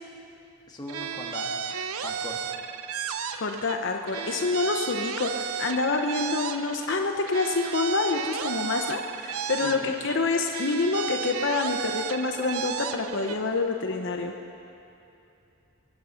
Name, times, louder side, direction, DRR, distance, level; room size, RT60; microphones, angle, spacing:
voice 1, 0.7-1.5 2.0-2.4 9.6-9.9, left 2 dB, 20° left, -1 dB, 1.6 m, -39 dB
sound 1, 0.9-3.8 4.1-7.0 7.3-10.2 10.5-13.4, right 6 dB, 85° right, 0.6 m, -33 dB
voice 2, 3.3-14.3, left 3 dB, 55° left, 4 dB, 0.8 m, -27 dB
22.0 x 10.5 x 5.7 m, 2.8 s
head